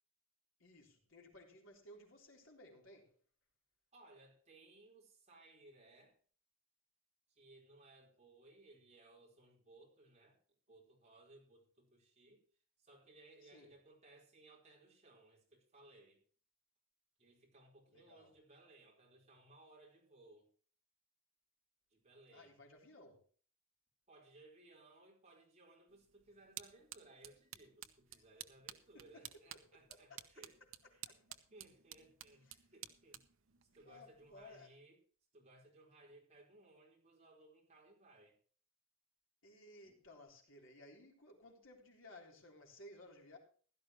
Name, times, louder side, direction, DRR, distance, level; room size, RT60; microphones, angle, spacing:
voice 1, 0.6-3.2 13.4-13.7 17.9-18.3 22.3-23.2 28.1-28.2 28.9-29.5 29.9-30.3 31.1-31.4 32.5-32.6 33.8-34.7 39.4-43.4, left 1 dB, 70° left, 3.7 m, -59 dB
voice 2, 3.9-6.2 7.3-10.4 10.7-12.4 12.8-16.2 17.2-20.5 21.9-22.5 24.1-30.6 30.9-31.0 31.5-33.2 33.7-35.0 35.3-38.4 39.8-40.0, right 2 dB, 35° right, 4.4 m, -63 dB
sound 1, 25.9-34.6, right 11 dB, 75° right, 0.9 m, -55 dB
16.0 x 12.5 x 3.1 m
head